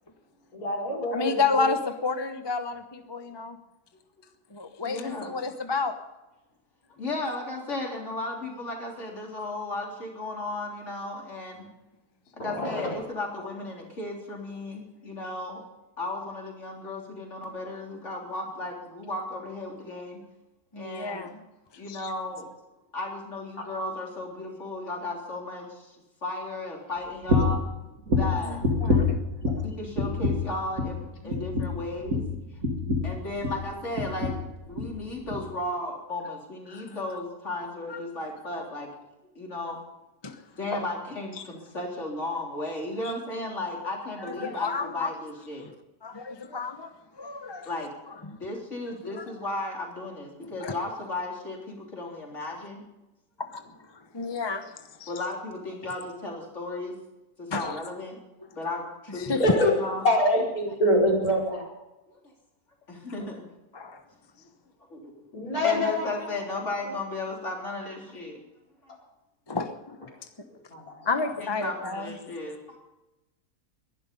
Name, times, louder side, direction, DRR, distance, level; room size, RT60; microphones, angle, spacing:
voice 1, 0.5-1.7 12.4-12.9 23.6-23.7 59.4-59.8 60.0-61.7 65.3-66.3 70.7-71.1, left 1 dB, 65° left, -3 dB, 5.2 m, -25 dB
voice 2, 1.1-3.6 4.5-5.9 20.7-21.4 21.7-22.1 28.4-29.2 31.2-31.4 36.7-37.0 37.9-38.0 38.5-38.6 40.2-40.4 43.0-43.1 44.2-45.1 45.6-45.7 46.0-46.9 47.1-47.7 48.1-48.4 49.1-49.2 50.4-50.7 53.9-54.7 55.0-55.1 57.5-57.8 59.2-59.4 63.7-64.0 69.5-70.1 71.0-72.2, left 4 dB, 20° left, 7 dB, 0.8 m, -31 dB
voice 3, 4.8-5.3 7.0-11.7 12.3-15.6 16.0-20.2 20.8-21.3 21.8-22.5 22.9-26.0 26.2-27.6 28.1-28.6 29.6-32.3 33.0-34.4 34.7-38.9 39.4-39.8 40.6-45.7 47.6-47.9 48.3-52.8 54.3-54.4 55.1-57.0 57.4-58.2 58.6-60.1 62.9-63.4 64.9-65.1 65.6-68.4 68.8-68.9 70.5-70.6 71.4-72.8, left 2 dB, 45° left, -1 dB, 4.0 m, -35 dB
sound 1, 27.3-27.7 28.1-29.7 30.0-30.5 30.8-31.0 31.3-33.7 34.0-34.4 34.7-35.0 35.3-35.4, left 3 dB, 65° right, 2.8 m, -26 dB
21.5 x 11.5 x 5.4 m, 1.0 s
omnidirectional pair, 1.7 m